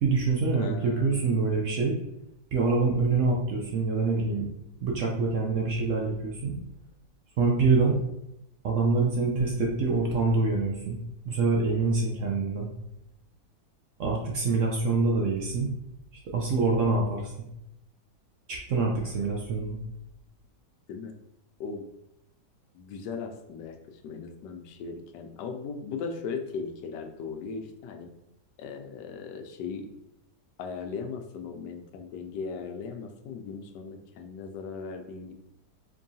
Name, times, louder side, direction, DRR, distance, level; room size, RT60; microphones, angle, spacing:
voice 1, 0.0-2.0 2.5-4.5 4.8-6.6 7.4-8.0 8.6-11.0 11.2-12.7 14.0-15.7 16.3-17.3 18.5-19.8, right 3 dB, 70° right, 0 dB, 0.7 m, -25 dB
voice 2, 0.5-1.3 19.0-19.2 20.9-21.1 21.6-21.9 22.7-28.1 28.6-29.9 30.6-35.3, left 5 dB, 80° left, 5 dB, 1.2 m, -38 dB
4.4 x 3.0 x 2.7 m, 0.83 s
omnidirectional pair, 1.8 m